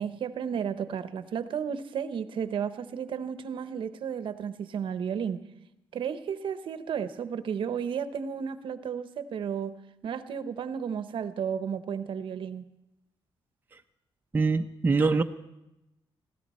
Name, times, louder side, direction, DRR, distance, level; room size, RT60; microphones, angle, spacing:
voice 1, 0.0-5.4 5.9-9.7 10.0-12.6, right 7 dB, 70° right, 11 dB, 0.9 m, -33 dB
voice 2, 14.3-15.2, right 4 dB, 20° right, 4 dB, 0.7 m, -23 dB
20.5 x 16.5 x 4.3 m, 0.92 s
cardioid pair, 130°, 9 cm